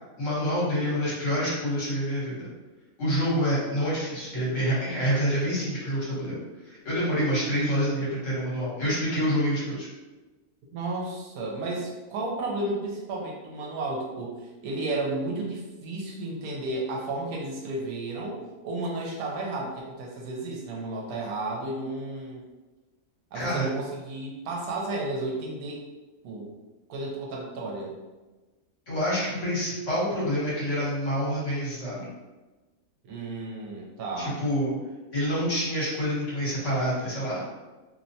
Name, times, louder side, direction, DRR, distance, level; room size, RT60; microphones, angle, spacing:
voice 1, 0.2-2.5 3.0-9.9 23.3-23.7 28.9-32.1 34.2-34.7 35.1-37.4, equal, 55° left, -8 dB, 1.3 m, -27 dB
voice 2, 10.7-18.4 18.6-22.4 23.3-25.8 26.2-26.5 26.9-28.0 33.0-34.4, right 2 dB, 80° right, -2 dB, 1.1 m, -33 dB
2.8 x 2.1 x 2.6 m, 1.2 s
omnidirectional pair, 1.6 m